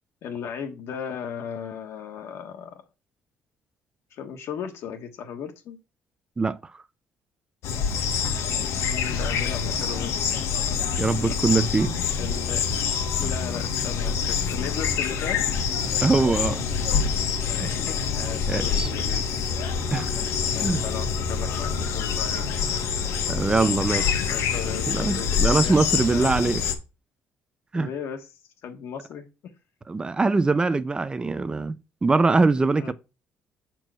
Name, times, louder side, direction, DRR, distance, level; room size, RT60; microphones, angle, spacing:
voice 1, 0.2-2.8 4.1-5.8 8.5-10.8 11.2-11.4 12.2-12.6 13.2-15.6 17.5-19.2 20.5-22.5 23.8-25.8 26.1-26.3 27.7-28.3 28.6-29.3 32.8-32.9, left 7 dB, 70° left, 1.2 m, -36 dB
sound 1, 7.6-26.7, left 6 dB, 85° left, 1.4 m, -26 dB
voice 2, 11.0-12.0 16.0-16.6 17.6-17.7 18.5-18.9 19.9-20.1 20.6-20.8 23.3-24.1 24.9-26.6 27.7-27.9 29.9-32.9, right 3 dB, 20° right, 0.5 m, -23 dB
6.6 x 4.6 x 6.2 m
cardioid pair, 130°, 5 cm